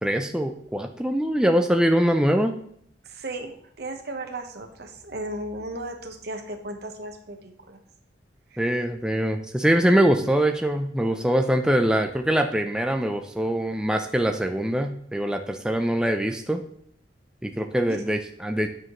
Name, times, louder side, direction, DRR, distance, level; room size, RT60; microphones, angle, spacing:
voice 1, 0.0-2.6 8.6-16.6 17.4-18.7, right 1 dB, 5° right, 5 dB, 0.4 m, -23 dB
voice 2, 3.0-7.8 8.5-8.6 17.9-18.0, right 1 dB, 65° right, 5 dB, 1.1 m, -35 dB
8.9 x 6.4 x 3.1 m, 0.65 s
head